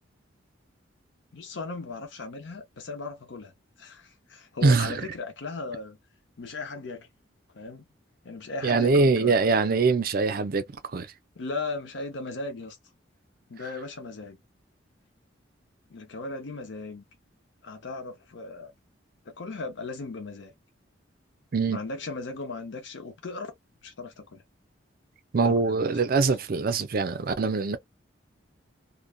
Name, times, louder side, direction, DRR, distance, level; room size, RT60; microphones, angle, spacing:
voice 1, 1.3-3.5 3.8-6.0 6.4-7.1 7.5-7.9 8.2-9.4 11.4-12.8 13.5-14.4 15.9-17.0 17.6-18.7 19.3-20.5 21.7-23.5 23.8-24.4 25.4-25.6, left 3 dB, 65° left, 0.7 m, -37 dB
voice 2, 4.6-4.9 8.6-11.1 21.5-21.8 25.3-27.8, right 4 dB, 50° right, 0.5 m, -23 dB
2.5 x 2.2 x 2.2 m
head